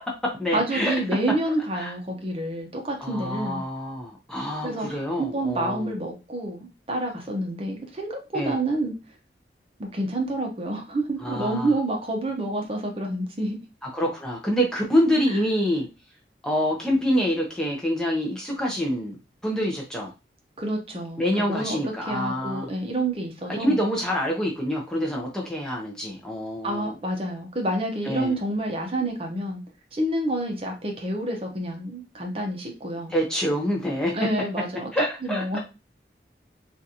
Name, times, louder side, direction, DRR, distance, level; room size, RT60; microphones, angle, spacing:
voice 1, 0.0-1.0 1.7-1.9 3.0-5.9 8.3-8.6 11.2-11.7 13.8-15.9 16.4-19.2 19.4-20.1 21.2-22.7 23.6-26.9 28.0-28.3 33.1-34.2 34.9-35.6, equal, 5° left, -2 dB, 0.6 m, -26 dB
voice 2, 0.5-3.6 4.6-8.9 9.8-13.6 15.3-15.4 20.6-21.8 22.1-23.8 26.6-29.6 29.9-33.1 34.1-34.9 35.2-35.6, right 1 dB, 30° right, 2 dB, 0.7 m, -28 dB
3.7 x 2.5 x 2.8 m, 0.28 s
head